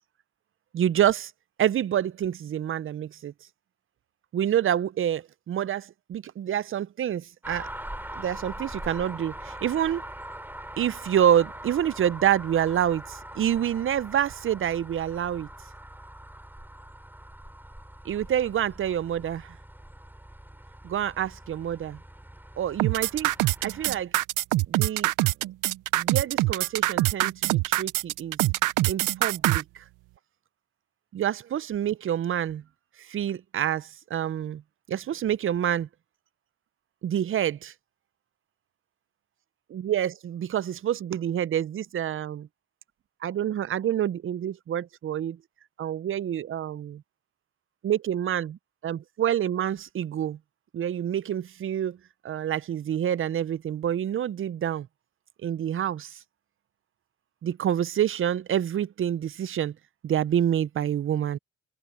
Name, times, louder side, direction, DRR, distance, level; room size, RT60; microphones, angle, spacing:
voice 1, 0.7-1.3 1.6-3.3 4.3-7.7 8.1-10.0 10.8-15.5 18.0-19.6 20.8-22.0 22.6-23.3 23.6-24.1 24.7-25.1 25.4-25.5 25.9-28.4 28.9-29.8 31.1-32.6 33.0-34.6 34.9-35.9 37.0-37.7 39.7-42.5 43.2-45.4 45.8-47.0 47.8-50.4 50.7-52.0 52.2-54.9 55.4-56.1 57.4-59.7 60.0-61.4, right 10 dB, 45° right, 0.5 m, -27 dB
sound 1, 7.4-24.0, right 1 dB, 5° right, 5.8 m, -42 dB
sound 2, 22.8-29.6, right 18 dB, 85° right, 0.6 m, -24 dB
cardioid pair, 90°, 30 cm